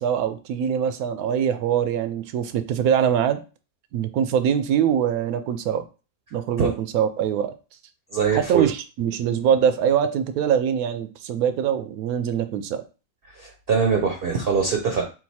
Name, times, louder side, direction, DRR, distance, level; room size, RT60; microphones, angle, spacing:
voice 1, 0.0-3.4 3.9-5.8 6.3-7.5 8.3-12.8, right 8 dB, 85° right, 10 dB, 1.1 m, -23 dB
voice 2, 8.1-8.7 13.3-15.0, right 6 dB, 55° right, 2 dB, 0.7 m, -22 dB
3.9 x 2.5 x 4.2 m, 0.32 s
omnidirectional pair, 1.5 m